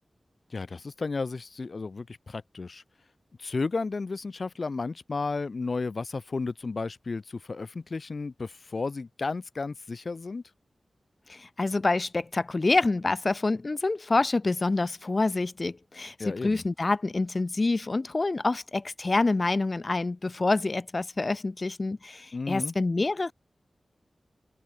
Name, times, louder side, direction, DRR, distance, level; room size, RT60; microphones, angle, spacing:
voice 1, 0.5-2.8 3.4-10.4 16.2-16.6 22.3-22.7, left 4 dB, 60° left, 7.0 m, -33 dB
voice 2, 11.3-23.3, left 3 dB, 45° left, 7.0 m, -27 dB
open air
cardioid pair, 50°, 0 cm